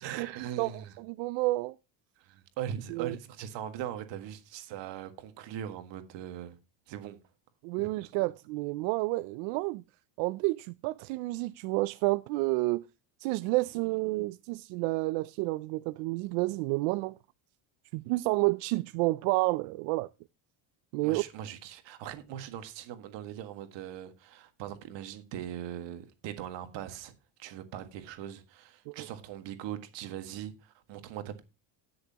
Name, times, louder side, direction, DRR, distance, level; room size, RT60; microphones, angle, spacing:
voice 1, 0.0-1.0 2.2-6.6 6.9-7.2 7.8-7.9 21.0-27.1 27.4-31.4, right 10 dB, 60° right, 1.8 m, -40 dB
voice 2, 1.0-1.7 2.9-3.1 7.6-9.8 10.2-12.9 13.2-17.1 17.9-20.1 20.9-21.2 28.9-29.1, right 22 dB, 85° right, 0.6 m, -30 dB
18.5 x 6.5 x 2.9 m
cardioid pair, 160°, 50 cm